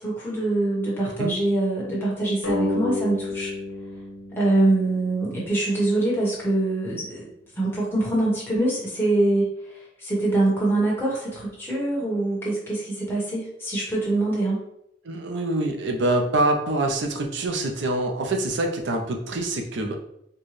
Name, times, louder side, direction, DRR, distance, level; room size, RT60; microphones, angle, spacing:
voice 1, 0.0-3.5 4.3-14.6, right 2 dB, 10° left, -6 dB, 1.2 m, -24 dB
sound 1, 2.4-5.6, left 3 dB, 85° left, 1.1 m, -31 dB
voice 2, 15.0-19.9, right 2 dB, 65° right, 3 dB, 0.6 m, -25 dB
4.4 x 2.2 x 3.2 m, 0.76 s
head